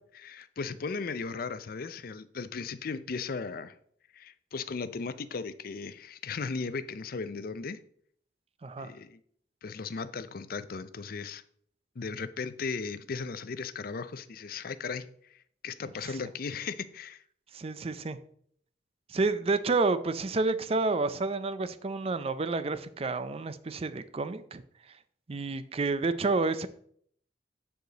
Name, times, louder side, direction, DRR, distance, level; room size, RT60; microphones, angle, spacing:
voice 1, 0.1-3.8 4.1-7.8 8.8-9.2 9.6-11.4 12.0-17.2, left 4 dB, 55° left, 0.5 m, -37 dB
voice 2, 17.5-18.2 19.1-24.6 25.3-26.7, right 3 dB, 35° right, 0.5 m, -29 dB
9.1 x 4.9 x 4.0 m
head